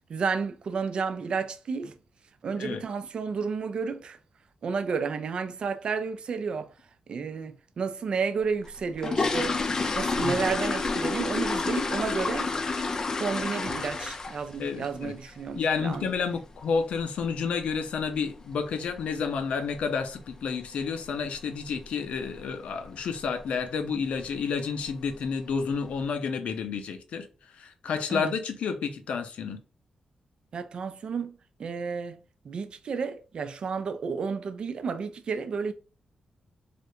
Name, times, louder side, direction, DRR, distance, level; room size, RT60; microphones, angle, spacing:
voice 1, 0.1-1.9 2.4-4.2 4.6-6.7 7.1-9.6 10.0-12.5 13.2-16.1 28.1-28.3 30.5-32.2 32.4-35.7, right 5 dB, 50° right, 0.4 m, -31 dB
sound 1, 8.7-14.6 14.8-15.1 15.5-15.6 15.9-16.1 16.5-16.7 16.9-17.0 17.6-17.7 18.0-18.1 18.6-19.0 19.2-19.3 19.7-19.9 20.3-20.4 20.8-20.9 21.5-21.8 22.1-22.5 22.8-22.9 23.4-23.5 24.2-24.4 24.8-25.2 25.7-25.8, left 3 dB, 30° left, 0.4 m, -29 dB
voice 2, 14.6-15.1 15.6-27.3 27.6-29.6, left 5 dB, 80° left, 0.6 m, -30 dB
3.2 x 2.5 x 2.7 m
wide cardioid pair, 150°, 2 cm